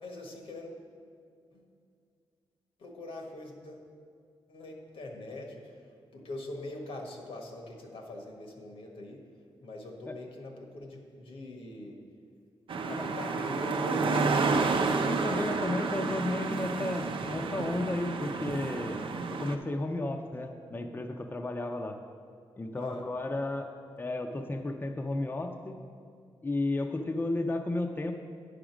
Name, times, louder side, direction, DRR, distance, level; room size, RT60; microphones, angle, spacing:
voice 1, 0.0-0.7 1.5-1.7 2.8-3.9 4.5-5.8 6.1-9.2 9.6-12.0 12.9-14.5 22.7-23.0, left 2 dB, 80° left, 1 dB, 1.3 m, -42 dB
sound 1, 12.7-19.6, right 4 dB, 65° right, 0.6 m, -30 dB
voice 2, 15.1-19.0 19.3-22.0 22.6-23.7 24.0-25.8 26.4-28.1, left 2 dB, 20° left, 4 dB, 0.5 m, -33 dB
9.8 x 5.1 x 6.0 m, 2.3 s
cardioid pair, 85°, 9 cm